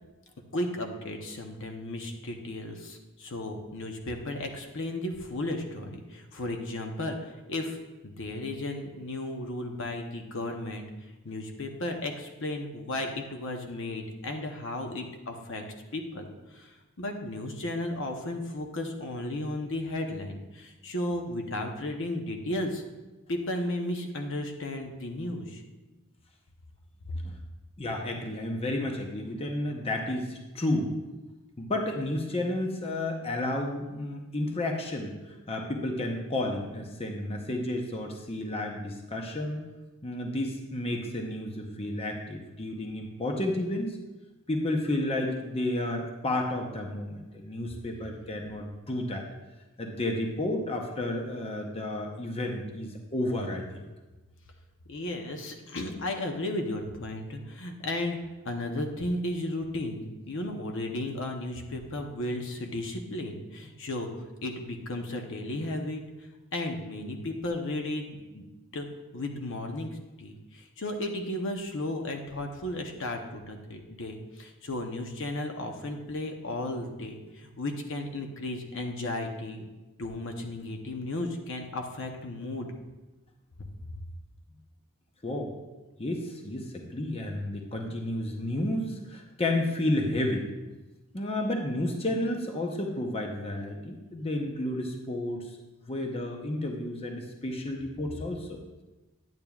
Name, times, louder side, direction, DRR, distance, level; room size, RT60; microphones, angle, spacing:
voice 1, 0.5-10.8 11.2-15.6 15.9-22.8 23.3-25.6 54.9-58.2 58.4-64.1 64.4-66.0 66.5-68.4 68.7-68.9 69.1-79.7 80.0-82.7, left 1 dB, 60° left, 3 dB, 0.8 m, -34 dB
voice 2, 27.8-30.9 31.6-39.6 40.0-44.0 44.5-49.2 49.8-53.8 85.2-85.5 86.0-90.5 91.1-95.4 95.8-98.6, left 1 dB, 25° left, 1 dB, 0.8 m, -31 dB
10.5 x 8.7 x 2.4 m, 1.1 s
head